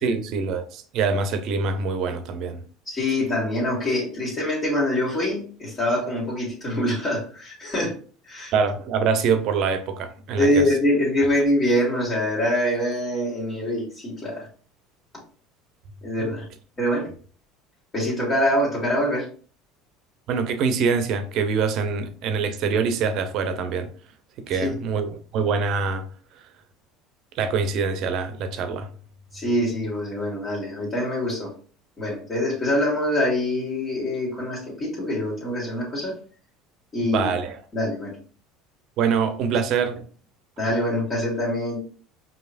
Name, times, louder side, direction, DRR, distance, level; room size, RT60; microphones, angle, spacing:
voice 1, 0.0-2.6 8.5-10.6 16.2-16.3 20.3-23.9 24.4-26.1 27.4-28.9 37.0-37.6 39.0-40.0, right 5 dB, 60° right, 0.7 m, -24 dB
voice 2, 2.9-8.0 8.2-8.5 10.4-14.5 16.0-16.5 16.8-17.1 17.9-19.3 24.5-24.7 29.3-31.5 32.0-36.2 36.9-37.3 37.7-38.1 40.6-41.8, left 1 dB, 35° left, 1.8 m, -24 dB
4.8 x 2.9 x 2.5 m
hypercardioid pair, 80°, 0 cm